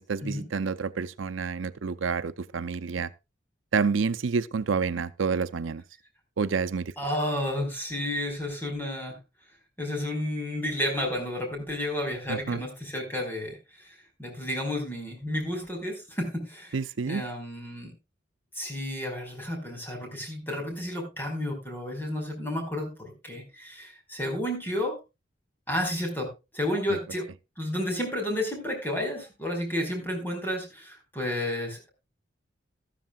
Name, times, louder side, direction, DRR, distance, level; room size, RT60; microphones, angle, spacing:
voice 1, 0.0-3.1 3.7-5.8 6.4-6.9 12.3-12.6 16.7-17.2 26.9-27.0, right 5 dB, 90° right, 0.6 m, -29 dB
voice 2, 7.0-9.1 9.8-16.8 17.1-17.9 18.5-24.9 25.7-27.3 27.6-31.9, left 1 dB, 10° left, 4.7 m, -31 dB
13.5 x 13.0 x 2.3 m
head